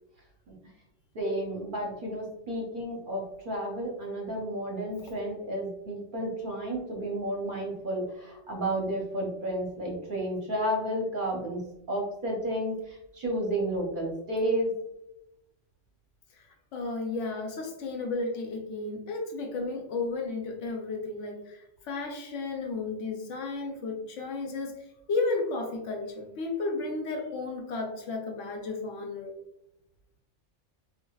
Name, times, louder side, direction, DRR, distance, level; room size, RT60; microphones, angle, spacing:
voice 1, 1.1-11.6 11.9-14.7, right 1 dB, 50° right, -1 dB, 0.7 m, -32 dB
voice 2, 16.7-24.7 25.1-29.3, left 3 dB, 75° left, 3 dB, 1.0 m, -33 dB
4.6 x 2.2 x 2.2 m, 0.86 s
omnidirectional pair, 1.3 m